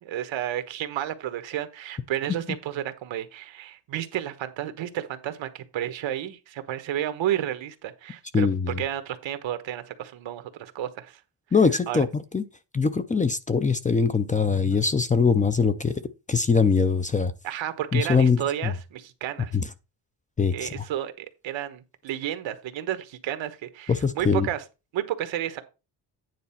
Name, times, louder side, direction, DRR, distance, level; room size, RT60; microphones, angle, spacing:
voice 1, 0.0-8.5 8.8-11.2 11.9-12.0 17.4-19.6 20.5-24.6 24.9-25.6, right 11 dB, 90° right, 1.2 m, -31 dB
voice 2, 8.3-8.8 11.5-12.4 12.7-15.9 16.3-17.3 17.9-18.7 19.5-19.6 20.4-20.8 23.9-24.5, left 5 dB, 20° left, 0.4 m, -22 dB
9.5 x 3.9 x 5.7 m
wide cardioid pair, 170°, 44 cm